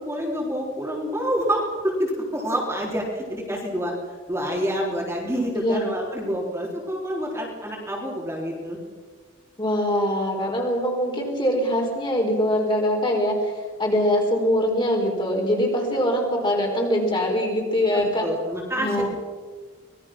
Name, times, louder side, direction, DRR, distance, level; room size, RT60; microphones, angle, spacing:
voice 1, 0.0-3.9 4.3-8.8 15.9-16.0 17.9-19.1, equal, 10° right, -2 dB, 3.6 m, -27 dB
voice 2, 5.6-5.9 9.6-13.5 13.8-18.3 18.8-19.1, equal, 20° left, 0 dB, 4.5 m, -23 dB
25.0 x 20.5 x 6.1 m, 1.5 s
head